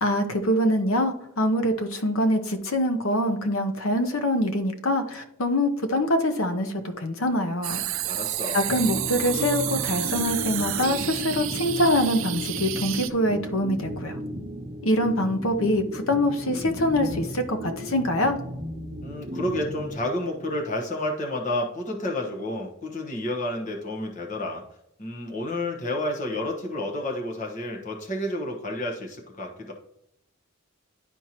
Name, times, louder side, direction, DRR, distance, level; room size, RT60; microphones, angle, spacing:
voice 1, 0.0-7.8 8.5-14.2 14.8-18.4, left 1 dB, 70° left, 7 dB, 0.9 m, -24 dB
sound 1, 7.6-13.1, right 13 dB, 65° right, 0.5 m, -30 dB
voice 2, 8.1-8.6 19.0-24.6 25.0-29.7, left 1 dB, 35° left, 0 dB, 1.1 m, -30 dB
sound 2, 8.7-20.5, equal, 30° right, 0.7 m, -35 dB
11.0 x 4.5 x 3.0 m, 0.79 s
head